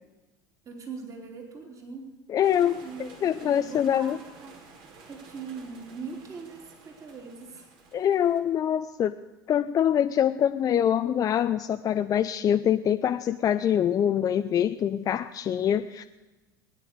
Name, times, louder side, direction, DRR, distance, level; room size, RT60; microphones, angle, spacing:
voice 1, 0.6-2.1 2.6-7.7, right 5 dB, 30° right, 2 dB, 3.3 m, -42 dB
voice 2, 2.3-4.2 7.9-9.1 9.5-16.0, left 9 dB, 35° left, 8 dB, 0.6 m, -24 dB
sound 1, 2.4-8.4, right 4 dB, 50° right, 3.0 m, -51 dB
20.0 x 10.0 x 6.7 m, 1.1 s
hypercardioid pair, 75°, 11 cm